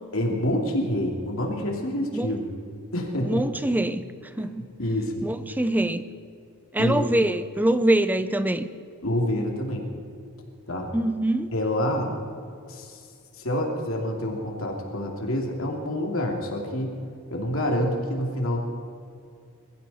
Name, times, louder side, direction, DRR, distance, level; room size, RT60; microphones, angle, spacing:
voice 1, 0.1-2.5 2.9-3.4 4.4-4.5 4.8-5.2 6.8-7.1 9.0-9.8 10.7-10.9 11.5-12.1 12.7-13.0 13.3-16.9 17.3-18.6, left 1 dB, 65° left, 0 dB, 2.9 m, -27 dB
voice 2, 3.2-4.0 4.4-4.6 5.2-6.1 6.7-8.7 10.9-11.5, right 1 dB, 10° right, 12 dB, 0.6 m, -24 dB
22.0 x 15.0 x 4.3 m, 2.4 s
head